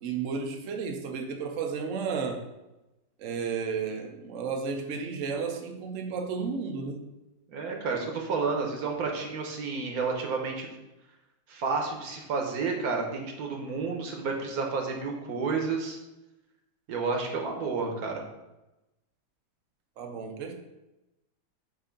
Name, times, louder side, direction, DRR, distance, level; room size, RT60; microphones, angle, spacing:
voice 1, 0.0-2.5 3.2-7.0 20.0-20.5, right 5 dB, 80° right, 4 dB, 0.6 m, -33 dB
voice 2, 7.5-10.7 11.5-16.0 16.9-18.2, right 4 dB, 60° right, 2 dB, 1.1 m, -30 dB
7.9 x 2.6 x 5.1 m, 0.99 s
omnidirectional pair, 2.2 m